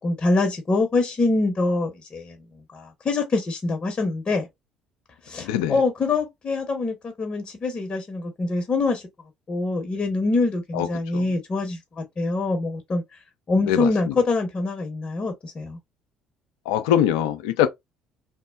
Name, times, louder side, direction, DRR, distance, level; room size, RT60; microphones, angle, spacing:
voice 1, 0.0-2.4 2.7-4.4 5.2-9.0 9.5-13.0 13.5-15.8, left 3 dB, 35° left, 0.8 m, -24 dB
voice 2, 5.4-5.8 10.7-10.9 11.1-11.2 13.7-13.9 16.7-17.7, left 11 dB, 70° left, 0.4 m, -22 dB
3.0 x 2.0 x 2.3 m
figure-of-eight pair, 55°, 3 cm